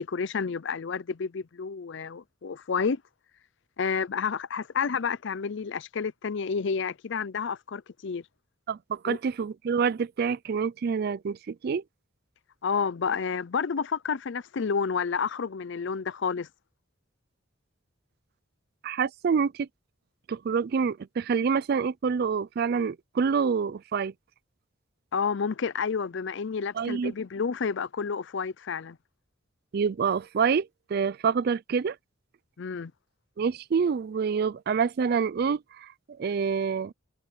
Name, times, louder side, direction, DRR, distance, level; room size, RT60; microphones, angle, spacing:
voice 1, 0.0-3.0 3.8-8.2 9.0-9.2 12.6-16.5 25.1-29.0 32.6-32.9, left 5 dB, 60° left, 0.5 m, -30 dB
voice 2, 8.7-11.8 18.8-19.7 20.3-24.1 26.7-27.1 29.7-32.0 33.4-35.9 36.2-36.9, right 6 dB, 50° right, 0.3 m, -27 dB
head